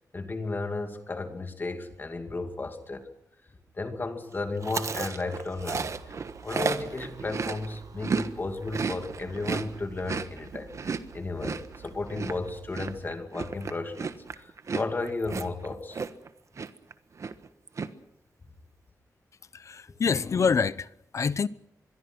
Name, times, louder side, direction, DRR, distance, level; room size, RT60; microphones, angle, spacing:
voice 1, 0.1-3.0 3.8-6.1 6.4-16.1, left 3 dB, 30° left, 2.4 m, -34 dB
Chewing mastication, 4.6-8.3 8.6-16.3 16.6-16.9 17.2-17.9, right 5 dB, 50° right, 1.3 m, -33 dB
sound 1, 5.6-13.1, right 5 dB, 90° right, 5.6 m, -50 dB
voice 2, 19.5-21.5, left 5 dB, 50° left, 0.8 m, -26 dB
25.0 x 22.5 x 6.2 m
wide cardioid pair, 135°, 6 cm